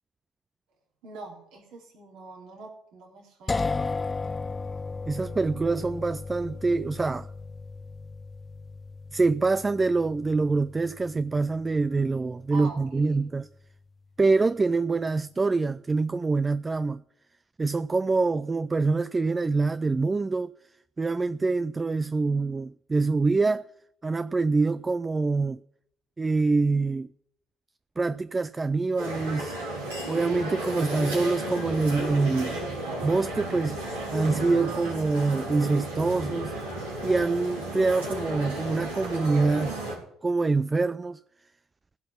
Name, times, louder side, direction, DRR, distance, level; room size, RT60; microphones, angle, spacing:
voice 1, 1.0-3.8 12.5-13.3, right 3 dB, 65° right, 3.9 m, -44 dB
sound 1, 3.5-13.3, left 4 dB, 25° left, 0.7 m, -36 dB
voice 2, 5.1-7.3 9.1-13.5 14.2-17.0 17.6-20.5 21.0-23.7 24.0-25.6 26.2-27.1 28.0-29.6 30.1-32.6 33.0-33.8 34.1-36.5 37.0-39.8 40.2-41.2, right 3 dB, 25° right, 0.4 m, -25 dB
sound 2, 29.0-40.0, right 1 dB, 90° right, 4.1 m, -33 dB
16.5 x 6.0 x 8.4 m
hypercardioid pair, 55°, 0 cm